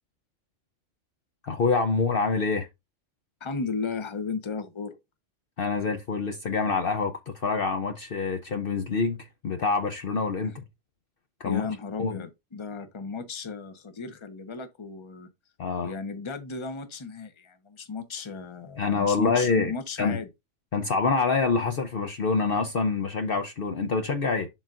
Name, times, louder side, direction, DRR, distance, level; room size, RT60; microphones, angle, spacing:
voice 1, 1.4-2.7 5.6-9.2 9.4-10.6 11.4-11.7 12.0-12.1 15.6-15.9 18.8-19.7 20.0-20.2 20.7-24.5, left 4 dB, 55° left, 0.8 m, -26 dB
voice 2, 3.4-5.0 10.4-10.5 11.4-15.3 15.8-20.3, left 5 dB, 25° left, 0.8 m, -35 dB
11.0 x 3.9 x 2.5 m
omnidirectional pair, 1.3 m